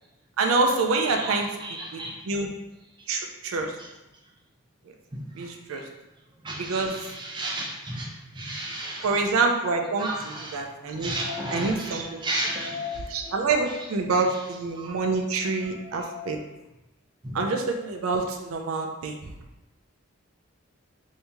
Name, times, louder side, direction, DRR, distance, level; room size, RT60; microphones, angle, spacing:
voice 1, 0.4-1.6 1.9-2.5 3.1-3.8 5.4-5.9 6.6-7.0 9.0-11.1 11.5-12.2 13.1-16.4 17.3-19.4, right 3 dB, 85° right, 0.4 m, -26 dB
voice 2, 1.2-2.2 5.4-5.5 6.4-9.1 10.0-10.6 11.0-13.4 14.8-14.9 15.9-16.3 17.2-17.4, right 1 dB, 20° right, 0.5 m, -33 dB
2.9 x 2.7 x 3.4 m
head